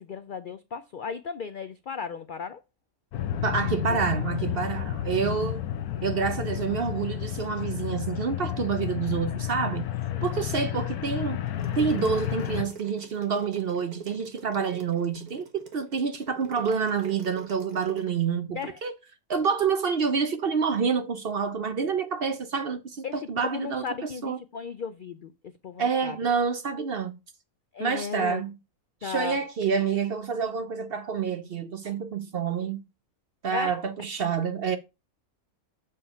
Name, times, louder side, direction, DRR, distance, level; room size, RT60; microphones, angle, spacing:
voice 1, 0.0-2.6 3.9-4.0 10.1-10.2 18.5-18.8 23.0-26.2 27.7-28.4 29.0-29.4 33.5-33.8, left 6 dB, 70° left, 0.4 m, -35 dB
sound 1, 3.1-12.6, left 11 dB, 90° left, 1.2 m, -31 dB
voice 2, 3.4-5.6 6.0-9.9 10.2-11.4 11.7-18.9 19.3-24.4 25.8-27.2 27.8-28.6 29.0-32.8 33.4-34.8, right 6 dB, 50° right, 0.7 m, -28 dB
sound 2, 11.5-18.1, right 5 dB, 85° right, 2.0 m, -44 dB
7.2 x 4.8 x 5.6 m
omnidirectional pair, 1.5 m